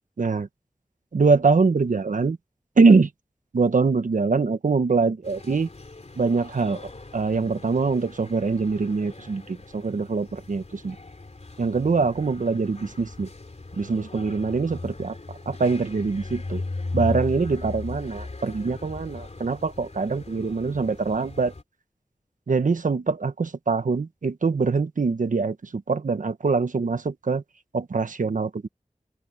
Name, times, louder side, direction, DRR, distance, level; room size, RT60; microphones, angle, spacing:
voice 1, 1.1-2.4 2.8-3.1 3.5-5.7 6.2-6.8 7.1-10.9 11.6-13.3 13.8-15.2 15.5-16.6 16.9-21.5 22.5-27.4 27.7-28.7, right 4 dB, 90° right, 1.2 m, -23 dB
sound 1, 5.2-21.6, left 2 dB, 55° left, 3.3 m, -38 dB
open air
wide cardioid pair, 45°, 13 cm